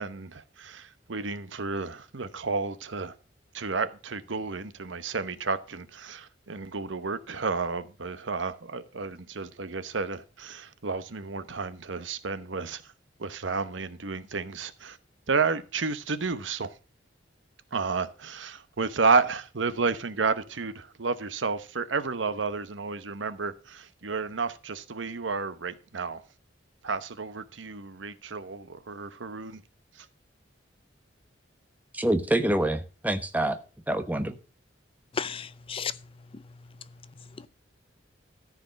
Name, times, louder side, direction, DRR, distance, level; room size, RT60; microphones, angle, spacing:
voice 1, 0.0-3.1 3.5-12.8 13.2-15.0 15.3-16.7 17.7-26.2 26.8-29.6, right 4 dB, 80° right, 1.0 m, -31 dB
voice 2, 31.9-33.6 33.9-34.3, right 1 dB, 10° right, 1.0 m, -26 dB
voice 3, 35.1-36.0 36.3-36.4 37.4-37.5, left 6 dB, 30° left, 0.5 m, -33 dB
14.0 x 5.0 x 6.4 m
head